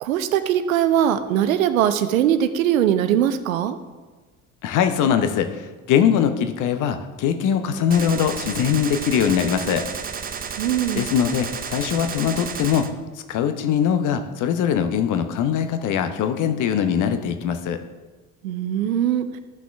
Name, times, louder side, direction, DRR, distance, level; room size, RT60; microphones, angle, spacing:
voice 1, 0.0-3.8 10.6-11.1 18.4-19.4, right 10 dB, 70° right, 10 dB, 0.7 m, -21 dB
voice 2, 4.6-9.8 10.9-12.9 13.3-17.8, left 8 dB, 45° left, 9 dB, 0.9 m, -22 dB
Gunshot gunfire, 7.9-12.9, right 6 dB, 20° right, 0.6 m, -32 dB
14.0 x 6.0 x 3.5 m, 1.3 s
figure-of-eight pair, 55°, 42 cm